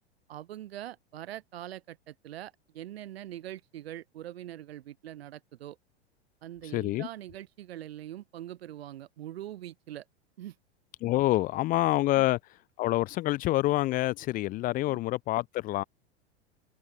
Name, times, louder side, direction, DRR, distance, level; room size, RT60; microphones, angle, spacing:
voice 1, 0.3-5.8 6.4-10.1 10.4-10.6 12.2-12.3 14.8-15.0, right 12 dB, 60° right, 0.8 m, -43 dB
voice 2, 6.7-7.1 11.0-12.4 12.8-15.8, left 17 dB, 25° left, 0.6 m, -27 dB
figure-of-eight pair, 90°, 35 cm